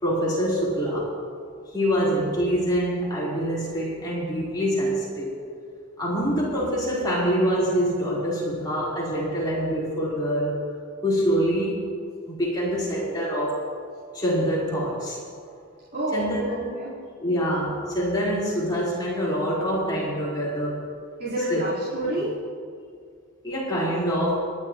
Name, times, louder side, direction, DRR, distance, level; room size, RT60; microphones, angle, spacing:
voice 1, 0.0-1.1 1.7-5.4 6.0-10.6 11.0-11.8 12.3-13.6 14.1-15.2 16.1-16.7 17.2-20.9 21.5-21.6 23.4-24.3, equal, 20° left, -7 dB, 4.1 m, -25 dB
voice 2, 15.9-16.9 21.2-22.4, right 1 dB, 50° right, -11 dB, 4.0 m, -29 dB
28.0 x 11.0 x 3.0 m, 2.2 s
head